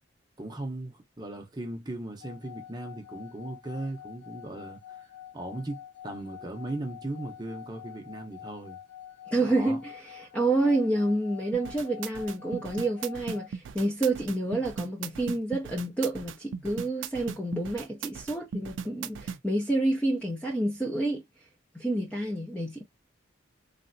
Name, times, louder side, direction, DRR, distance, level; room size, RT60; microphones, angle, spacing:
voice 1, 0.4-4.8 5.3-8.8 9.4-9.8, right 1 dB, 20° right, 0.7 m, -37 dB
sound 1, 2.2-13.5, left 11 dB, 70° left, 1.9 m, -47 dB
voice 2, 9.3-21.2 21.7-22.8, right 2 dB, 5° left, 0.5 m, -28 dB
sound 2, 11.5-19.4, right 6 dB, 75° right, 0.3 m, -38 dB
3.2 x 2.5 x 2.6 m
head